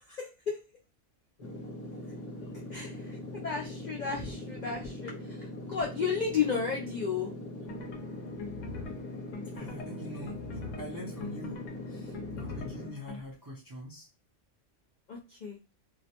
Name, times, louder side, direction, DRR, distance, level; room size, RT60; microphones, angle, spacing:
voice 1, 0.2-0.6 2.7-7.3 15.1-15.6, left 6 dB, 65° left, -1 dB, 0.4 m, -33 dB
sound 1, 1.4-12.9, left 1 dB, 35° left, 0.8 m, -41 dB
sound 2, 7.7-13.2, left 4 dB, 80° left, 0.9 m, -43 dB
voice 2, 9.5-14.1, left 1 dB, 30° right, -5 dB, 0.4 m, -44 dB
2.4 x 2.0 x 2.8 m, 0.29 s
omnidirectional pair, 1.3 m